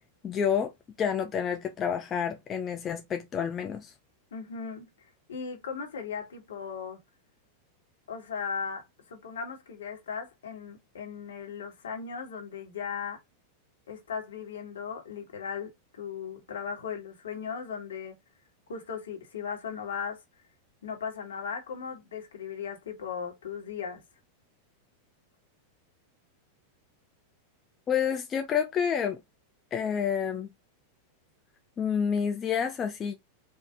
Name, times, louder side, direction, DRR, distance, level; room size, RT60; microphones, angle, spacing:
voice 1, 0.2-0.7 1.0-3.9 27.9-29.2 29.7-30.5 31.8-33.1, left 7 dB, 25° left, 0.5 m, -29 dB
voice 2, 4.3-4.9 5.3-7.0 8.1-13.2 13.9-18.2 18.7-20.2 20.8-24.0, left 6 dB, 65° left, 1.5 m, -37 dB
4.7 x 2.6 x 3.5 m
figure-of-eight pair, 90°, 0 cm